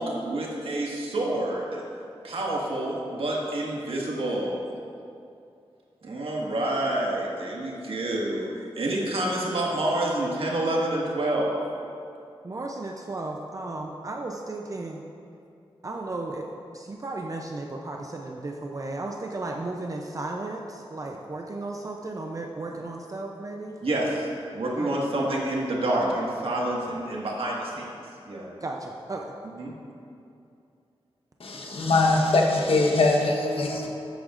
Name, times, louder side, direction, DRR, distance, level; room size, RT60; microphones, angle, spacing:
voice 1, 0.0-1.8 2.2-4.6 6.0-8.5 8.8-11.5 23.8-27.9 28.3-28.5 29.6-29.7 31.5-31.6 32.9-33.9, right 1 dB, 70° right, -3 dB, 1.7 m, -28 dB
voice 2, 12.4-15.0 15.8-16.5 16.7-23.8 24.7-25.0 25.2-25.4 28.6-29.3, right 2 dB, 35° right, 1 dB, 0.5 m, -34 dB
voice 3, 31.4-33.9, left 2 dB, 70° left, 0 dB, 1.1 m, -22 dB
13.5 x 8.3 x 2.5 m, 2.6 s
wide cardioid pair, 135°, 10 cm